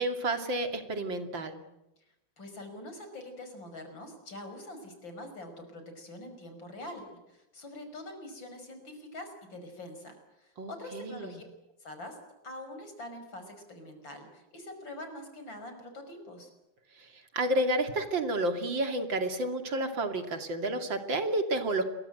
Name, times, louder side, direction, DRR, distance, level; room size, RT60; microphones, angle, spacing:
voice 1, 0.0-1.6 10.6-11.4 17.0-21.8, right 1 dB, 80° right, 6 dB, 3.4 m, -31 dB
voice 2, 2.0-11.4 11.8-12.2 12.4-16.5, left 1 dB, 80° left, 7 dB, 6.3 m, -45 dB
29.5 x 23.0 x 7.8 m, 0.91 s
omnidirectional pair, 2.0 m